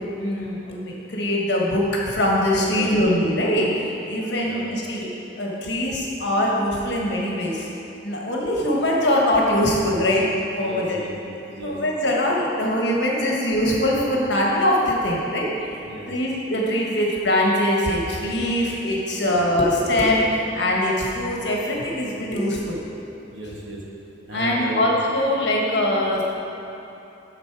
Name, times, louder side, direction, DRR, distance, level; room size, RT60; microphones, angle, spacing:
voice 1, 0.2-5.1 5.4-7.7 8.0-10.3 10.5-11.0 11.6-15.5 16.1-22.8 24.3-26.2, left 1 dB, 60° left, -3 dB, 1.3 m, -22 dB
voice 2, 2.6-3.1 4.3-4.6 10.6-11.8 15.8-16.1 19.1-19.4 23.3-23.8 24.3-24.9, right 1 dB, 70° right, -3 dB, 1.4 m, -35 dB
11.5 x 4.0 x 4.6 m, 2.9 s
head